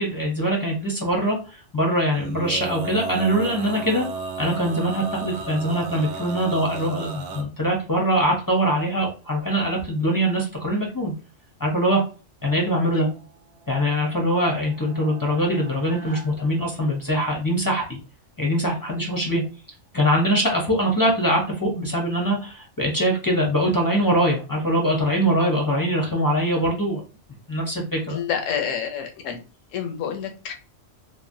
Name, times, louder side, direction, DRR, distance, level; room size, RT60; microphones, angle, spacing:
voice 1, 0.0-4.1 4.4-11.1 11.6-12.0 12.4-13.1 13.7-18.0 18.4-19.4 19.9-27.0 27.5-28.2, equal, 30° left, -1 dB, 0.4 m, -23 dB
Male singing, 2.1-7.4, right 4 dB, 75° right, 0.9 m, -33 dB
sound 1, 13.0-17.4, right 3 dB, 35° right, 0.6 m, -46 dB
voice 2, 28.1-29.4 29.7-30.5, left 7 dB, 85° left, 4 dB, 0.9 m, -28 dB
3.0 x 2.1 x 2.6 m, 0.34 s
omnidirectional pair, 1.3 m